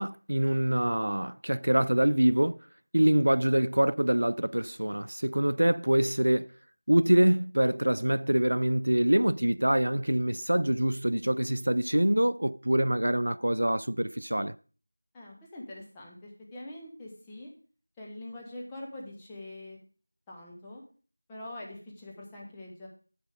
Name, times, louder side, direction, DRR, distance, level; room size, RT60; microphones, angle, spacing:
voice 1, 0.0-2.6 2.9-6.5 6.9-14.6, right 1 dB, 75° right, 0.3 m, -25 dB
voice 2, 15.1-17.5 18.0-19.8 20.3-20.8 21.3-22.9, left 1 dB, 5° left, 1.0 m, -44 dB
10.5 x 7.3 x 4.9 m
figure-of-eight pair, 175°, 0 cm